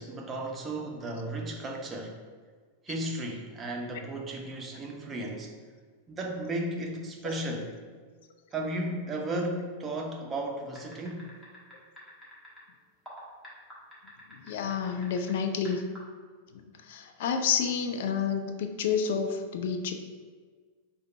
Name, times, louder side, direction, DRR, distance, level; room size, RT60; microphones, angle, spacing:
voice 1, 0.0-2.2 2.8-5.5 6.1-7.7 8.5-11.3, right 1 dB, 20° right, 1 dB, 0.7 m, -34 dB
sound 1, 10.7-12.6 13.1-15.3 15.6-16.0, left 1 dB, 10° left, 1.4 m, -47 dB
voice 2, 14.5-15.8 16.5-19.9, left 6 dB, 55° left, 6 dB, 0.3 m, -29 dB
4.9 x 2.3 x 4.1 m, 1.5 s
figure-of-eight pair, 90°, 0 cm